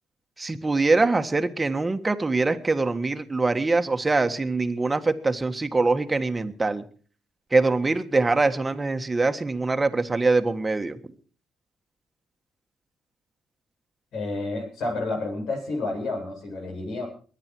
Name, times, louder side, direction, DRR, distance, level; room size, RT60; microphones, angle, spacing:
voice 1, 0.4-6.8 7.5-11.0, right 3 dB, 20° right, 7 dB, 1.5 m, -23 dB
voice 2, 14.1-17.1, left 2 dB, 75° left, 1 dB, 7.6 m, -30 dB
22.0 x 9.9 x 4.6 m, 0.41 s
cardioid pair, 80°, 0 cm